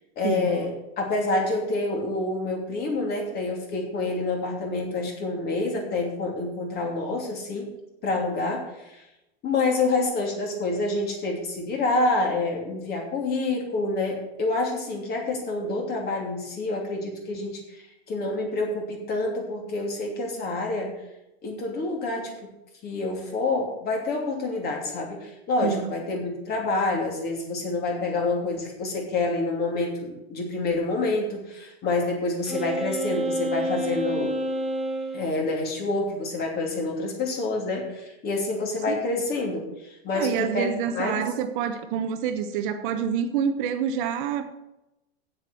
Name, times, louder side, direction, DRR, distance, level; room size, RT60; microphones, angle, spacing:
voice 1, 0.2-7.7 8.0-9.0 9.4-21.0 21.4-22.4 22.8-34.4 35.1-40.7 40.9-41.3, left 3 dB, 30° left, 2.8 m, -27 dB
voice 2, 25.6-25.9 38.9-39.0 40.1-44.4, right 8 dB, 50° right, 1.0 m, -27 dB
Wind instrument woodwind instrument, 32.5-35.3, right 1 dB, ahead, 1.3 m, -28 dB
8.3 x 7.6 x 6.9 m
supercardioid pair, 140°, 32 cm